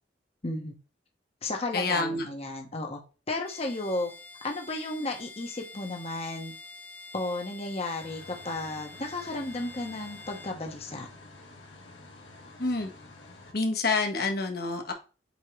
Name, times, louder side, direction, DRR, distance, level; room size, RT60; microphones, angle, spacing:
voice 1, 0.4-0.7 1.4-3.0 3.3-4.1 4.4-6.5 7.1-11.1, left 2 dB, 35° left, 2 dB, 1.2 m, -33 dB
voice 2, 1.7-2.3 12.6-12.9 13.5-14.9, left 3 dB, 55° left, 4 dB, 1.4 m, -27 dB
Bowed string instrument, 3.4-10.6, left 3 dB, 10° left, 0.6 m, -47 dB
sound 1, 8.0-13.5, left 2 dB, 85° left, 2.1 m, -50 dB
8.2 x 3.7 x 3.2 m, 0.33 s
head